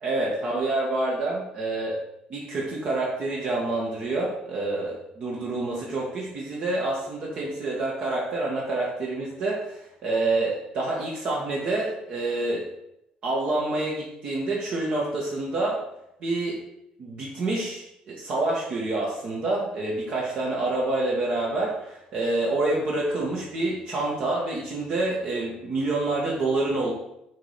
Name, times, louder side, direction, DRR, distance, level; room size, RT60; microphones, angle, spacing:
voice 1, 0.0-2.0 2.3-12.6 13.2-15.8 16.2-16.6 17.0-26.9, right 2 dB, 50° right, -4 dB, 1.5 m, -27 dB
7.4 x 3.3 x 5.6 m, 0.81 s
cardioid pair, 150°, 3 cm